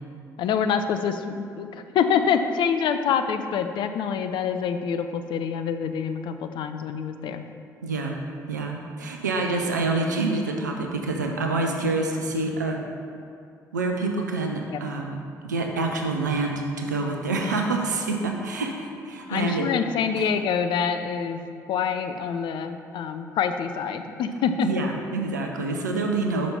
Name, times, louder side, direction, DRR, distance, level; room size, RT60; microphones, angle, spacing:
voice 1, 0.4-7.4 14.7-14.8 19.3-21.4 21.7-24.7, left 7 dB, 55° left, 8 dB, 0.5 m, -26 dB
voice 2, 7.8-8.1 8.5-12.8 13.7-15.2 15.4-19.7 20.2-20.3 24.6-26.5, right 3 dB, 85° right, 2 dB, 0.6 m, -27 dB
5.8 x 5.1 x 5.7 m, 2.4 s
figure-of-eight pair, 45°, 9 cm